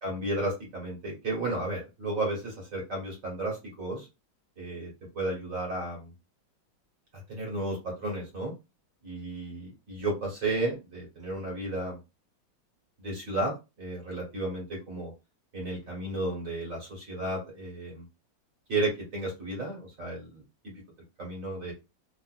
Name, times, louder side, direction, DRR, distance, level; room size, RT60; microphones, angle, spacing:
voice 1, 0.0-4.1 4.6-6.1 7.3-8.5 9.0-12.0 13.0-15.1 15.5-18.0 18.7-20.4 21.2-21.7, right 2 dB, 45° right, -2 dB, 1.5 m, -33 dB
3.5 x 2.5 x 2.4 m, 0.26 s
omnidirectional pair, 2.2 m